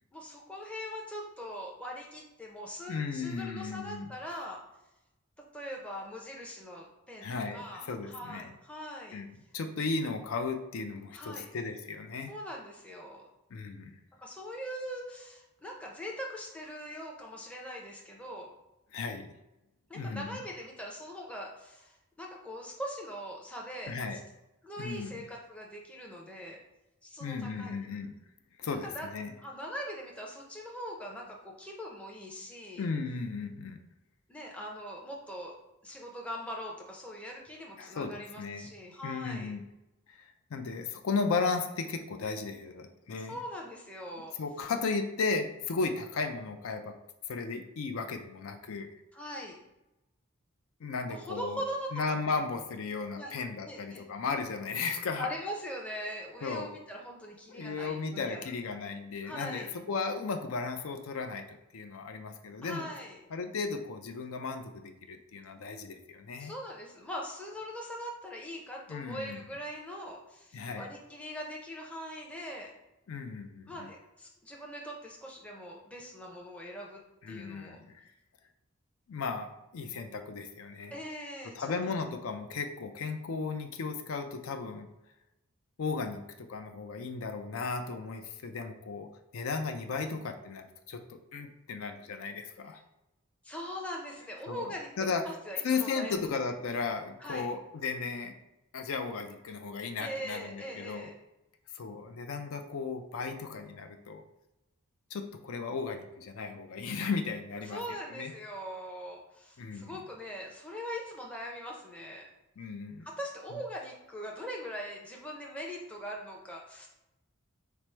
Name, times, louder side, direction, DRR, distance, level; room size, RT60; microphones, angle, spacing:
voice 1, 0.1-4.6 5.4-9.2 11.1-11.5 12.3-13.2 14.2-18.5 19.9-24.2 24.6-26.6 27.0-27.9 28.8-29.1 29.4-32.8 34.3-35.6 35.8-39.5 43.2-44.3 49.1-49.6 51.2-51.9 53.2-53.3 53.6-54.0 55.2-58.4 59.2-59.7 62.6-63.2 66.4-72.7 73.7-77.0 77.3-77.8 80.9-82.0 93.4-96.2 97.2-97.5 100.0-101.1 107.6-112.3 113.0-116.9, equal, 5° left, -2 dB, 0.5 m, -41 dB
voice 2, 2.9-4.1 7.2-8.5 9.1-12.3 13.5-13.9 18.9-19.3 19.9-20.4 23.9-24.2 24.8-25.3 27.2-28.1 28.6-29.3 32.8-33.8 37.8-38.7 39.0-39.6 40.1-43.4 44.4-46.9 47.3-48.9 50.8-51.6 51.9-55.3 56.4-56.7 57.5-62.9 63.3-66.5 68.9-69.4 70.5-70.9 73.1-73.9 77.2-78.1 79.1-80.9 81.4-84.9 85.8-89.1 89.3-92.8 94.5-95.2 95.6-98.3 98.7-101.1 101.7-104.2 105.1-108.3 109.6-110.0 112.6-113.1, left 4 dB, 70° left, 6 dB, 0.4 m, -35 dB
4.6 x 2.0 x 4.3 m, 0.93 s
head